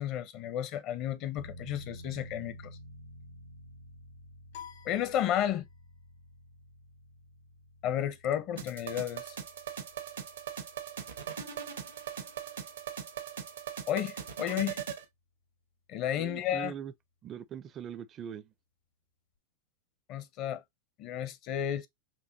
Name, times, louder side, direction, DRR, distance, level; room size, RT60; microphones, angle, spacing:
voice 1, 0.0-2.8 4.8-5.7 7.8-9.4 13.9-14.8 15.9-16.7 20.1-20.6 21.0-21.9, left 10 dB, 45° left, 0.6 m, -32 dB
sound 1, 1.4-13.9 14.2-14.3, equal, 90° left, 1.2 m, -52 dB
sound 2, 4.5-6.0, left 9 dB, 75° left, 1.5 m, -50 dB
sound 3, 8.6-15.0, right 8 dB, 85° right, 1.0 m, -40 dB
voice 2, 16.2-16.9 17.2-18.5, right 9 dB, 35° right, 0.4 m, -41 dB
4.5 x 2.7 x 2.6 m
hypercardioid pair, 105°, 0 cm